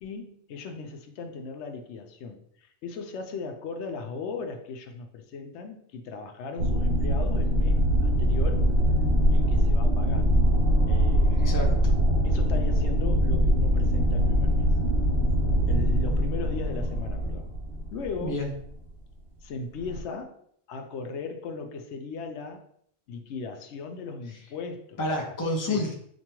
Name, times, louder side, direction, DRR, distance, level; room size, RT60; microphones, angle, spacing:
voice 1, 0.0-8.7 9.3-10.3 10.9-11.4 12.2-14.7 15.7-17.5 17.9-18.4 19.4-20.4 20.7-22.6 23.1-25.0 25.7-25.9, left 4 dB, 85° left, 6 dB, 0.9 m, -37 dB
sound 1, 6.6-18.6 19.8-20.0, equal, 85° right, 1.0 m, -23 dB
voice 2, 11.3-11.9 18.2-18.5 25.0-25.9, left 2 dB, 25° left, 0 dB, 0.5 m, -29 dB
5.1 x 2.2 x 2.9 m, 0.65 s
omnidirectional pair, 1.1 m